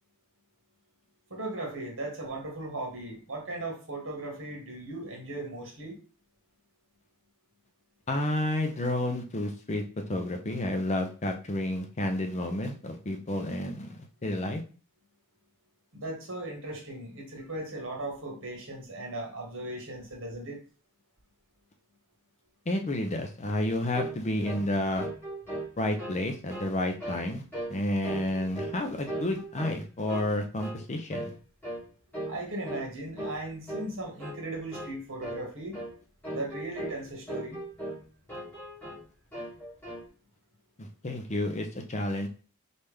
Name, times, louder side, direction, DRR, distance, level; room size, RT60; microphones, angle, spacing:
voice 1, 1.3-6.0 15.9-20.6 32.3-35.8 36.3-37.6, right 1 dB, 60° right, 1.5 m, -37 dB
voice 2, 8.1-9.8 10.1-14.6 22.7-25.1 25.8-27.4 27.7-31.3 40.8-42.3, left 1 dB, 30° left, 0.6 m, -30 dB
sound 1, 23.9-24.2 24.4-24.7 25.0-26.2 26.5-26.7 27.0-27.3 27.5-27.8 28.0-28.8 29.1-29.8 30.1-30.3 30.6-30.8 31.1-31.3 31.6-31.8 32.1-32.4 32.7-32.9 33.2-33.4 33.7-33.9 34.2-34.4 34.7-35.0 35.2-35.4 35.7-35.9 36.2-37.0 37.3-38.0 38.3-39.0 39.3-40.1, right 1 dB, 10° left, 2.3 m, -37 dB
4.1 x 3.4 x 3.4 m
head